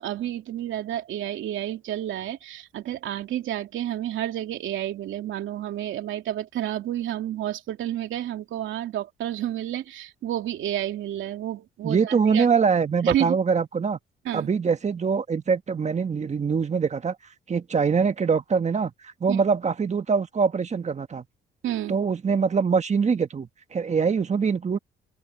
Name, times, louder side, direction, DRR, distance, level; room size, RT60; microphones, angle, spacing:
voice 1, 0.0-12.5 13.0-13.4 14.2-14.5 19.3-19.4 21.6-22.0, right 12 dB, 80° right, 2.9 m, -30 dB
voice 2, 11.8-14.0 14.3-17.1 17.5-21.2 21.9-24.8, right 5 dB, 35° right, 1.5 m, -23 dB
open air
cardioid pair, 90°, 20 cm